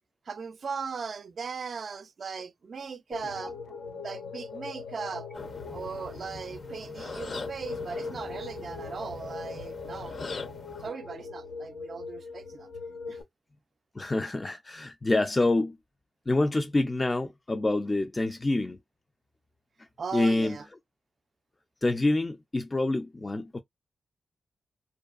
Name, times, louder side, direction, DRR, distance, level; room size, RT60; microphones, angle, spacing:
voice 1, 0.3-3.6 3.9-5.3 5.7-10.2 10.8-12.7 13.1-13.2 20.0-20.7, right 5 dB, 60° right, 0.3 m, -38 dB
sound 1, 3.1-13.2, left 4 dB, 90° left, 0.5 m, -41 dB
sound 2, 5.3-10.9, left 3 dB, 55° left, 0.7 m, -42 dB
voice 2, 14.0-15.8 16.3-18.8 20.1-20.6 21.8-23.6, left 2 dB, 30° left, 0.4 m, -26 dB
2.5 x 2.3 x 2.3 m
cardioid pair, 60°, 0 cm